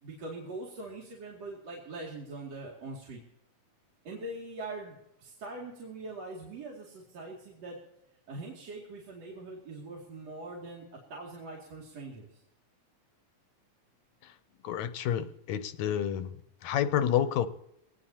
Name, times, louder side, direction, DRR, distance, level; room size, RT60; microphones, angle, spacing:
voice 1, 0.0-3.2 4.1-7.8 8.3-12.4, right 2 dB, 60° right, -3 dB, 3.6 m, -42 dB
voice 2, 14.6-16.3 16.6-17.5, left 10 dB, 75° left, 11 dB, 2.1 m, -29 dB
22.5 x 19.0 x 2.9 m, 0.82 s
omnidirectional pair, 3.4 m